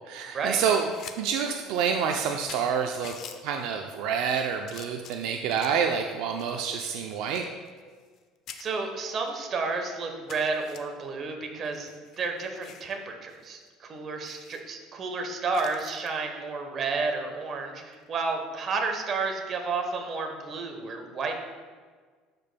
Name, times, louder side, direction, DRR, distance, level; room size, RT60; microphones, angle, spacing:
voice 1, 0.0-0.9 1.2-3.1 3.4-7.5, right 7 dB, 70° right, 4 dB, 0.4 m, -28 dB
sound 1, 0.7-1.2 1.5-1.6 2.2-2.3 2.5-3.4 4.1-4.3 4.7-5.8 6.4-8.2 8.5-8.6 9.3-9.4 9.7-9.8 10.3-10.8 11.6-12.9 13.3-13.5 13.7-13.8 14.2-14.6 15.5-16.1 17.8-18.1, left 8 dB, 50° left, 0.5 m, -46 dB
voice 2, 8.6-11.9 12.2-21.3, right 4 dB, 35° right, 3 dB, 1.0 m, -31 dB
12.0 x 5.2 x 2.2 m, 1.5 s
cardioid pair, 140°, 0 cm